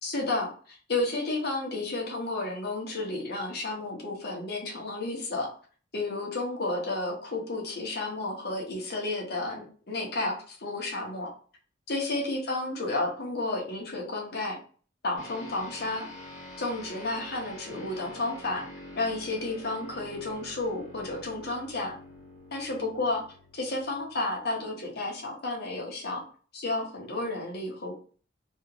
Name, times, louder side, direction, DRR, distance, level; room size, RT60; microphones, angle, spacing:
voice 1, 0.0-5.5 5.9-11.3 11.9-14.6 15.0-16.1 16.6-18.7 19.0-21.9 22.5-23.2 23.5-26.2 26.5-27.9, left 2 dB, 60° left, -1 dB, 1.1 m, -32 dB
sound 1, 15.2-24.9, equal, 45° left, 1.4 m, -47 dB
3.2 x 2.4 x 3.2 m, 0.41 s
head